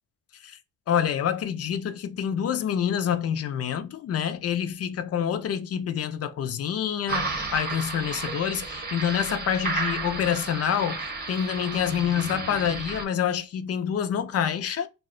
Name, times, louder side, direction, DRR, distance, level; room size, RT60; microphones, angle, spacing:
voice 1, 0.9-14.9, left 8 dB, 55° left, 0.5 m, -27 dB
sound 1, 7.1-13.0, right 3 dB, 30° right, 0.8 m, -32 dB
2.4 x 2.1 x 3.6 m
cardioid pair, 90°, 30 cm